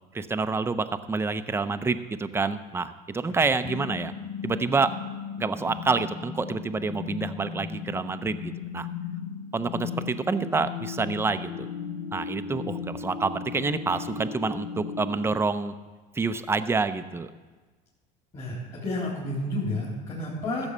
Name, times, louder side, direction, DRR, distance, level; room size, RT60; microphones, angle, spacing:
voice 1, 0.1-4.1 4.4-5.0 5.4-8.9 9.5-11.7 12.1-15.7 16.2-17.3, right 4 dB, 10° right, 10 dB, 0.6 m, -28 dB
sound 1, 3.6-15.4, left 6 dB, 60° left, 1.1 m, -36 dB
voice 2, 18.3-20.7, left 1 dB, 30° left, -6 dB, 3.4 m, -31 dB
14.5 x 7.1 x 5.5 m, 1.3 s
supercardioid pair, 110°, 20 cm